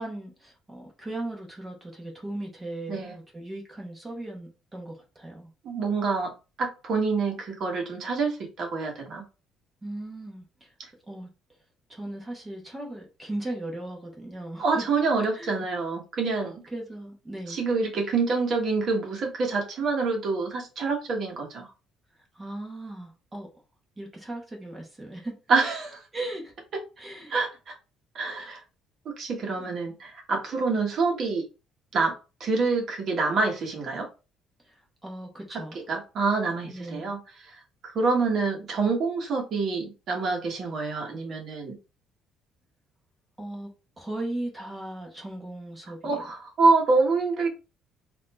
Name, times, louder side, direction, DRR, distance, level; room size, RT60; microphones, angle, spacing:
voice 1, 0.0-5.5 9.8-10.7 11.1-11.3 11.9-14.8 15.3-15.5 16.7-17.6 22.3-23.5 24.0-25.4 26.1-26.5 27.0-27.4 29.6-29.7 34.6-34.7 35.0-35.8 36.7-37.1 43.4-43.7 44.0-46.3, right 1 dB, 10° right, 0.9 m, -37 dB
voice 2, 5.6-6.3 6.6-9.2 14.6-16.6 17.5-21.7 25.5-26.0 27.3-27.7 28.1-28.6 29.0-31.4 31.9-32.1 32.4-34.1 35.9-37.2 37.8-41.8 46.0-47.5, right 4 dB, 40° right, 1.3 m, -26 dB
4.1 x 2.6 x 4.3 m
cardioid pair, 180°, 0 cm